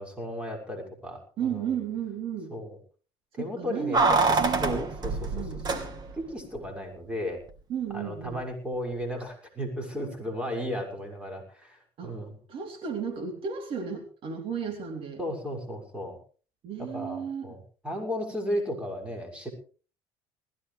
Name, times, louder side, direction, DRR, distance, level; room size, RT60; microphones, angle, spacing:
voice 1, 0.0-1.7 2.5-2.8 3.3-5.4 5.7-5.8 6.2-7.4 7.9-12.4 15.2-16.2 16.8-19.5, equal, 10° right, 2 dB, 6.4 m, -35 dB
voice 2, 1.4-2.5 3.4-4.9 5.3-5.7 7.7-8.4 12.0-12.1 12.5-15.2 16.6-17.5, right 7 dB, 55° right, 4 dB, 3.9 m, -34 dB
Keys jangling, 3.9-6.3 6.6-6.7, right 3 dB, 40° right, 2.9 m, -25 dB
20.0 x 16.0 x 3.5 m, 0.38 s
cardioid pair, 110°, 11 cm